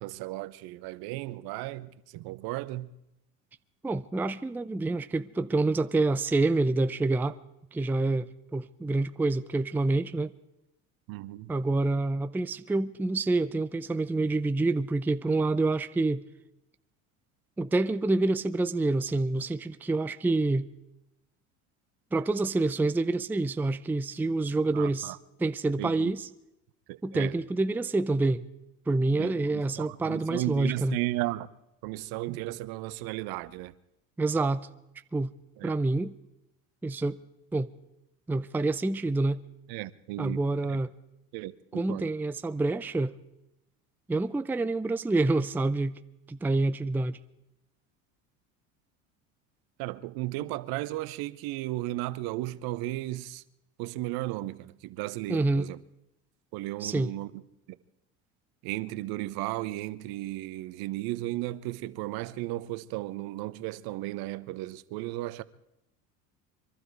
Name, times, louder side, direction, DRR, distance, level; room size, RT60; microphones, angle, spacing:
voice 1, 0.0-2.9 11.1-11.5 24.7-25.2 25.8-26.1 26.9-27.3 29.2-31.5 31.8-33.7 35.6-35.7 39.7-40.4 40.7-40.8 41.3-42.0 49.8-53.4 53.8-55.8 56.5-57.3 57.7-57.8 58.6-65.4, right 17 dB, 65° right, 0.9 m, -35 dB
voice 2, 3.8-7.4 7.7-10.3 11.5-16.2 17.6-20.7 22.1-25.1 25.4-26.3 27.0-28.5 28.9-31.0 34.2-34.7 35.1-35.3 35.6-36.1 36.8-37.2 37.5-37.7 38.3-39.4 40.2-40.9 41.7-43.1 44.1-46.0 46.3-47.2 55.3-55.7 56.8-57.1, right 2 dB, 5° right, 0.5 m, -27 dB
23.5 x 12.5 x 4.7 m
hypercardioid pair, 85°, 40 cm